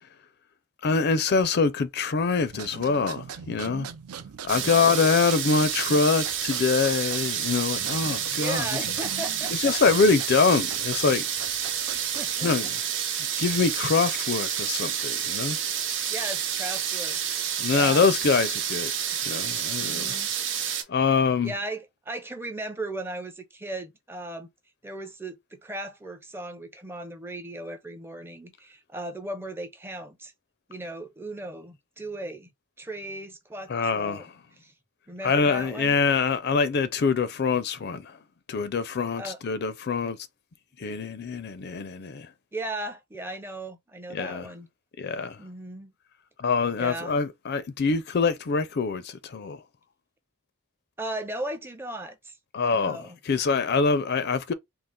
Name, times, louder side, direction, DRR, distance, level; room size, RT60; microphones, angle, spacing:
voice 1, 0.8-3.9 4.4-8.7 9.5-11.2 12.4-12.7 13.4-15.6 17.6-18.9 19.3-20.2 20.6-21.5 33.7-34.3 35.2-38.2 38.5-40.2 40.8-42.3 44.1-44.5 45.0-45.4 46.4-49.6 52.5-53.0 53.3-54.5, left 4 dB, 45° left, 0.4 m, -24 dB
sound 1, 2.5-12.5, right 7 dB, 85° right, 0.5 m, -41 dB
sound 2, 4.5-20.8, right 9 dB, 55° right, 0.8 m, -29 dB
voice 2, 8.3-9.7 11.6-12.7 16.1-17.4 17.7-18.1 19.7-20.3 21.4-24.5 24.8-30.3 30.7-32.5 32.8-34.3 34.6-34.7 35.1-36.0 39.2-39.4 42.5-44.7 45.4-45.9 46.7-47.2 51.0-52.4 52.7-53.2, right 1 dB, 10° right, 0.5 m, -37 dB
3.8 x 2.4 x 3.5 m
head